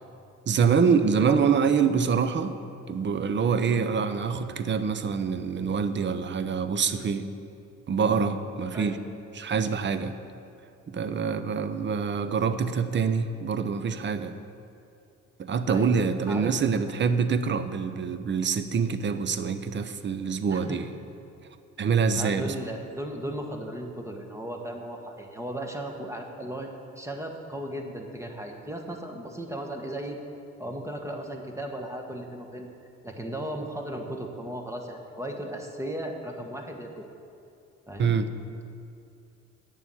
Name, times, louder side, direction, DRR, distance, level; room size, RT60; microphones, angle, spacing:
voice 1, 0.5-2.5 2.9-7.2 7.9-9.0 9.3-10.1 10.9-14.3 15.4-20.9 21.8-22.5 38.0-38.3, right 6 dB, 40° right, 11 dB, 0.7 m, -25 dB
voice 2, 8.7-9.1 15.7-16.5 20.5-20.8 22.1-26.7 27.0-30.2 30.6-32.7 33.0-37.0 37.9-38.1, right 1 dB, 10° right, 3 dB, 1.4 m, -36 dB
9.1 x 6.9 x 8.4 m, 2.6 s
cardioid pair, 90°, 30 cm